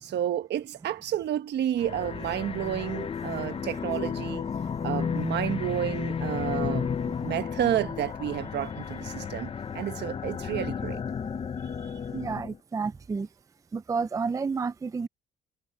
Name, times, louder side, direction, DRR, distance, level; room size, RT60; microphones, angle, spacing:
voice 1, 0.0-4.4 4.8-11.0, right 11 dB, 75° right, 1.3 m, -31 dB
sound 1, 1.8-12.6, left 6 dB, 30° left, 0.7 m, -33 dB
voice 2, 12.1-13.3 13.7-15.1, right 5 dB, 20° right, 0.4 m, -30 dB
cardioid pair, 125°, 18 cm